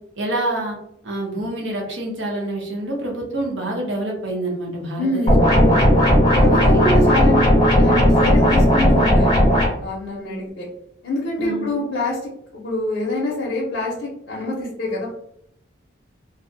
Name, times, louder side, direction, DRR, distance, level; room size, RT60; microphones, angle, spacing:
voice 1, 0.2-0.8 1.0-5.3 6.5-6.9 11.4-11.7, right 1 dB, 80° right, 0 dB, 0.7 m, -27 dB
voice 2, 5.0-5.8 6.3-7.4 7.7-10.7 11.0-15.1, left 1 dB, 80° left, -4 dB, 0.6 m, -25 dB
sound 1, 5.3-9.7, equal, 20° left, 0.5 m, -15 dB
2.4 x 2.0 x 2.6 m, 0.74 s
head